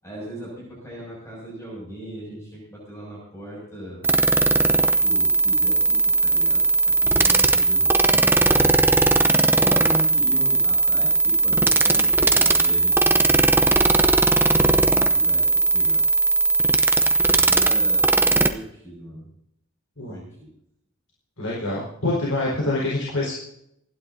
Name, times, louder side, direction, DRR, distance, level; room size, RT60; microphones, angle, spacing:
voice 1, 0.0-4.0 4.7-8.9 9.5-13.5 14.4-15.5 15.7-16.0 17.2-19.3 20.1-20.5, equal, 15° left, -5 dB, 6.7 m, -37 dB
sound 1, 4.0-18.5, right 2 dB, 10° right, 0.7 m, -18 dB
voice 2, 21.4-23.3, left 2 dB, 85° left, -4 dB, 4.8 m, -26 dB
28.0 x 11.5 x 2.8 m, 0.77 s
head